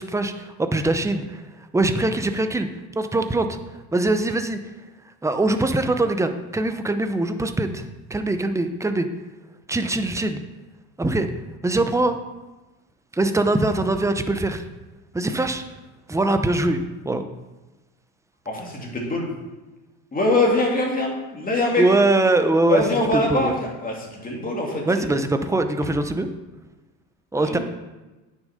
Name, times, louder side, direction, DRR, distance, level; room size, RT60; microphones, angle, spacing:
voice 1, 0.0-1.4 1.7-2.7 3.0-3.6 3.9-4.6 5.2-7.8 8.1-9.1 9.7-10.4 11.0-11.3 11.6-12.2 13.1-14.6 15.1-15.6 16.1-17.2 21.8-22.8 23.1-23.5 24.9-26.3 27.3-27.6, right 2 dB, 5° right, 8 dB, 0.7 m, -22 dB
voice 2, 18.5-19.3 20.1-21.8 22.7-25.2 27.3-27.6, left 2 dB, 20° left, -1 dB, 2.6 m, -23 dB
9.0 x 6.5 x 5.1 m, 1.1 s
supercardioid pair, 110°, 40 cm